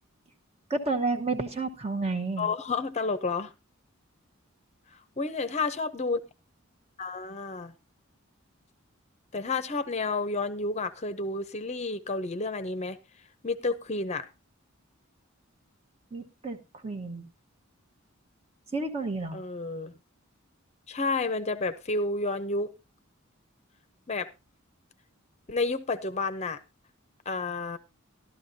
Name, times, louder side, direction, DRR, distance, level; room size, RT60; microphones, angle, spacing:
voice 1, 0.7-2.5 16.1-17.2 18.7-19.4, right 3 dB, 30° right, 1.1 m, -31 dB
voice 2, 2.4-3.5 5.2-6.2 7.0-7.7 9.3-13.0 13.4-14.3 19.3-19.9 20.9-22.7 24.1-24.3 25.5-26.6 27.3-27.8, left 3 dB, 30° left, 0.7 m, -30 dB
14.0 x 12.0 x 2.7 m
head